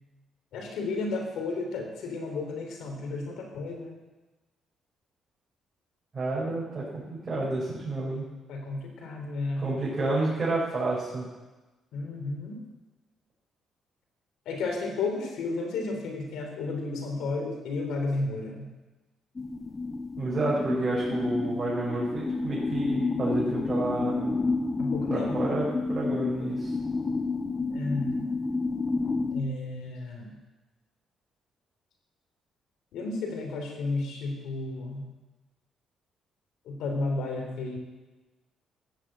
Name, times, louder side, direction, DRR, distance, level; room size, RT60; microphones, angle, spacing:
voice 1, 0.5-4.0 8.5-9.7 11.9-12.6 14.4-18.7 24.8-25.5 27.7-28.1 29.3-30.3 32.9-35.0 36.6-37.8, left 3 dB, 85° left, 2 dB, 3.5 m, -32 dB
voice 2, 6.1-8.2 9.6-11.2 20.2-24.4 25.1-26.7, right 2 dB, 35° right, -7 dB, 5.2 m, -30 dB
sound 1, 19.4-29.4, left 3 dB, 25° left, 0.8 m, -30 dB
14.0 x 7.6 x 7.7 m, 1.1 s
cardioid pair, 90°, 0 cm